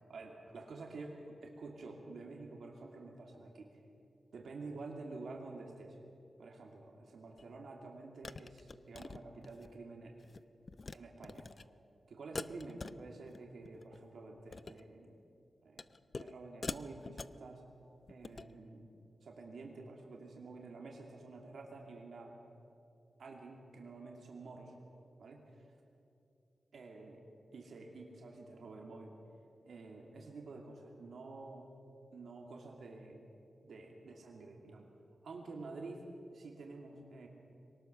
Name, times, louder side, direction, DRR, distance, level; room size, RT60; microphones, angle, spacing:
voice 1, 0.1-3.8 4.3-6.0 6.4-10.2 10.9-11.5 12.1-15.2 15.6-15.9 16.2-17.6 18.1-18.9 19.2-22.4 23.2-24.7 25.2-25.7 26.7-27.2 27.5-29.2 29.6-31.7 32.1-33.2 33.6-34.9 35.2-37.3, right 3 dB, 90° right, 0 dB, 2.6 m, -49 dB
sound 1, 7.4-7.5 8.2-9.7 10.1-10.4 10.7-11.0 11.2-11.6 12.3-13.4 13.6-14.0 14.4-14.8 15.8-16.3 16.6-17.4 18.1-18.5, left 3 dB, 45° left, 0.5 m, -45 dB
23.5 x 19.0 x 6.8 m, 2.6 s
wide cardioid pair, 95°, 0 cm